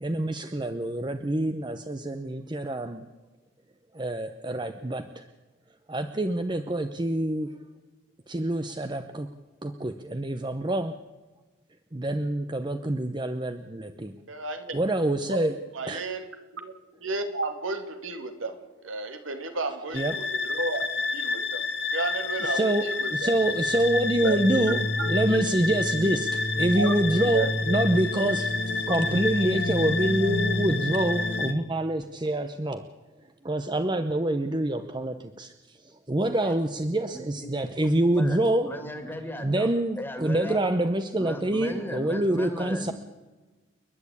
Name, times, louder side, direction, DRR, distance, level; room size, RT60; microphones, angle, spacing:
voice 1, 0.0-3.0 3.9-5.3 5.9-7.5 8.3-9.3 9.6-10.9 11.9-14.1 14.7-15.5 15.9-16.0 19.9-20.1 22.4-32.9 33.4-35.5 35.8-38.7 39.4-42.9, right 1 dB, 25° right, 8 dB, 0.8 m, -26 dB
voice 2, 14.3-14.8 15.3-15.4 15.7-16.3 16.5-16.7 17.0-18.6 18.8-20.8 21.1-21.6 21.9-23.3 24.2-24.4 25.0-25.1 26.7-26.9 27.2-27.8, right 2 dB, 85° right, 6 dB, 2.7 m, -32 dB
sound 1, 19.9-31.5, left 3 dB, 60° left, 1.6 m, -28 dB
voice 3, 38.6-39.7 40.0-40.6 41.2-42.9, left 1 dB, 10° left, 7 dB, 2.2 m, -36 dB
30.0 x 10.5 x 8.6 m, 1.2 s
head